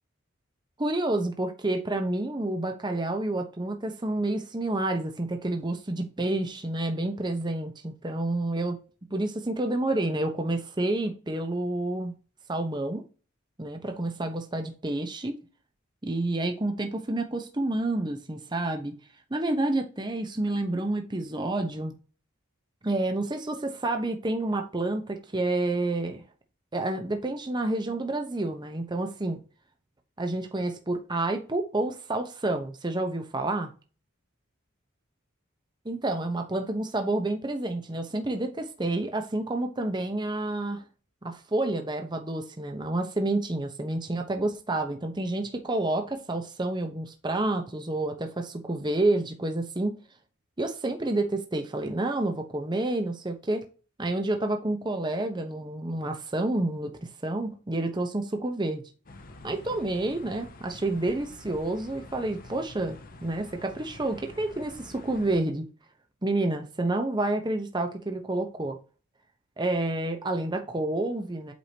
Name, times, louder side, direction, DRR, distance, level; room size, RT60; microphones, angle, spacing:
voice 1, 0.8-8.8 9.1-12.1 12.5-13.0 13.6-15.4 16.0-19.0 19.3-21.9 22.8-26.2 26.7-29.4 30.2-33.7 35.8-40.8 41.2-50.0 50.6-53.7 54.0-58.8 59.4-65.6 66.2-68.8 69.6-71.5, right 2 dB, 20° right, 0.8 m, -29 dB
sound 1, 59.1-65.4, left 2 dB, 40° left, 0.9 m, -47 dB
8.2 x 4.8 x 2.8 m
head